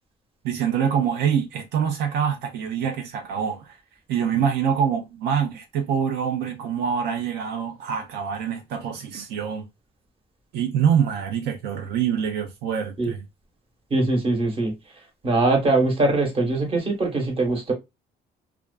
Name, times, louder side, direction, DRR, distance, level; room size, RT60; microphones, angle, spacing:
voice 1, 0.4-3.8 4.1-9.7 10.5-13.2, right 7 dB, 80° right, 0.4 m, -25 dB
voice 2, 13.9-14.7 15.2-17.7, right 2 dB, 35° right, 1.0 m, -22 dB
2.4 x 2.3 x 2.2 m
cardioid pair, 110°, 17 cm